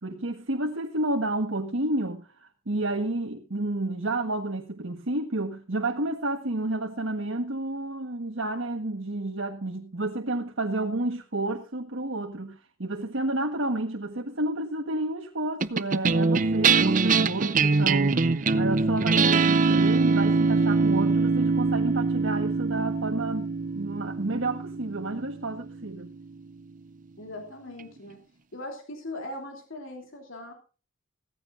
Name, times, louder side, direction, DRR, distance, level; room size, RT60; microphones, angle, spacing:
voice 1, 0.0-26.1, right 2 dB, 65° right, 1.4 m, -30 dB
sound 1, 15.6-26.2, right 4 dB, 40° right, 0.6 m, -23 dB
voice 2, 27.2-28.2 28.5-30.5, left 1 dB, 65° left, 3.2 m, -39 dB
17.0 x 15.0 x 2.6 m
head